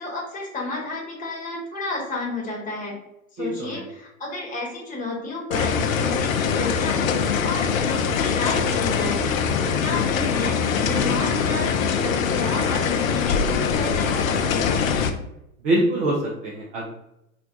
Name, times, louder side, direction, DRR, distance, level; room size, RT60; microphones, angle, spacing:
voice 1, 0.0-2.9 3.3-7.1 7.4-14.8, left 2 dB, 20° left, -2 dB, 1.0 m, -31 dB
voice 2, 3.4-3.8 15.6-16.9, right 1 dB, 20° right, -3 dB, 0.3 m, -24 dB
sound 1, 5.5-15.1, left 6 dB, 70° left, 0.5 m, -23 dB
2.5 x 2.2 x 3.6 m, 0.83 s
figure-of-eight pair, 95°, 43 cm